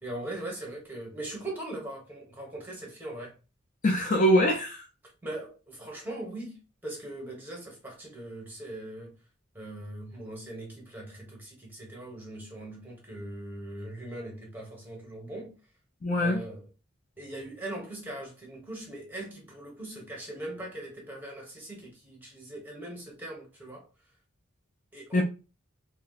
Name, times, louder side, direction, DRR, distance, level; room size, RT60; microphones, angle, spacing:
voice 1, 0.0-3.4 5.2-9.2 9.5-15.5 16.1-16.6 17.2-23.9 24.9-25.2, right 1 dB, 10° right, 1.1 m, -40 dB
voice 2, 3.8-4.8 16.0-16.4 25.1-25.2, equal, 40° left, 0.5 m, -23 dB
2.7 x 2.2 x 3.9 m
head